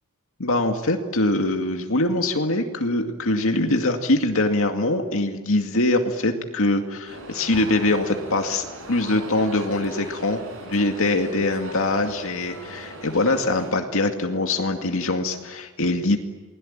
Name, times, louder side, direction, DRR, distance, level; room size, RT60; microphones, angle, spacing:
voice 1, 0.4-16.2, left 2 dB, 65° left, 4 dB, 2.3 m, -23 dB
sound 1, 7.1-13.7, right 1 dB, 60° right, 8.0 m, -39 dB
29.0 x 21.5 x 8.9 m, 1.3 s
head